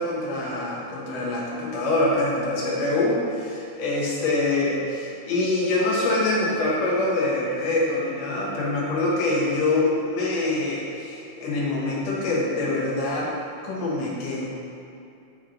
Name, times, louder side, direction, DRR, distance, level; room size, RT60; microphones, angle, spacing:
voice 1, 0.0-13.3 13.6-14.5, left 2 dB, 65° left, -5 dB, 2.2 m, -25 dB
7.2 x 4.2 x 3.8 m, 2.6 s
omnidirectional pair, 3.4 m